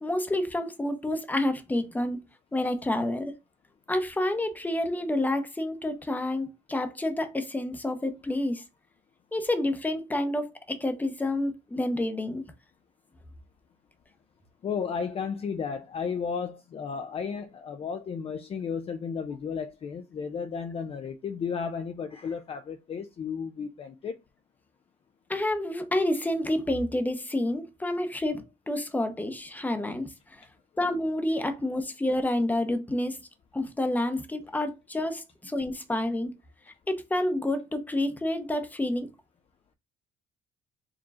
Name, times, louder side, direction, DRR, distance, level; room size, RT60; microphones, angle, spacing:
voice 1, 0.0-2.2 2.5-3.3 3.9-8.6 9.3-12.4 25.3-30.5 30.8-33.2 33.5-36.3 36.9-39.1, left 1 dB, 10° left, 0.8 m, -29 dB
voice 2, 14.6-24.2 31.4-31.5, left 6 dB, 35° left, 0.4 m, -33 dB
4.7 x 3.0 x 2.4 m
cardioid pair, 110°, 17 cm